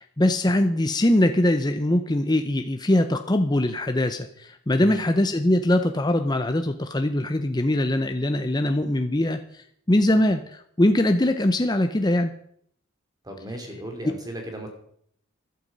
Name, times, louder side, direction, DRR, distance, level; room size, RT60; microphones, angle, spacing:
voice 1, 0.0-9.4 9.9-12.3 14.0-14.1, left 1 dB, 20° left, 7 dB, 0.6 m, -22 dB
voice 2, 13.2-14.7, right 1 dB, 15° right, 4 dB, 2.7 m, -35 dB
13.5 x 11.5 x 5.3 m, 0.66 s
head